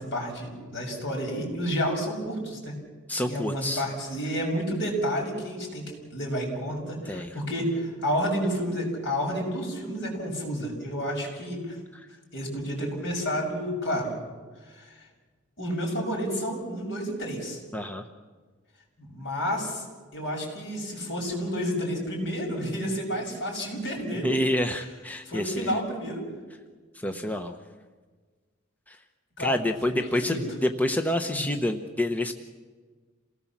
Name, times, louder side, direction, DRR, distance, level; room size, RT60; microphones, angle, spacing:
voice 1, 0.0-2.7 3.3-11.8 12.3-14.1 14.7-14.9 15.6-17.6 19.0-19.8 20.1-24.4 25.3-26.2 27.1-27.2 29.4-29.6 30.0-30.4 31.3-31.4, equal, 65° left, 0 dB, 7.0 m, -30 dB
voice 2, 3.1-3.8 7.1-7.3 17.7-18.0 24.2-25.8 26.9-27.6 28.9-29.0 29.4-32.3, left 1 dB, 10° left, 6 dB, 0.9 m, -28 dB
27.5 x 18.5 x 7.4 m, 1.4 s
head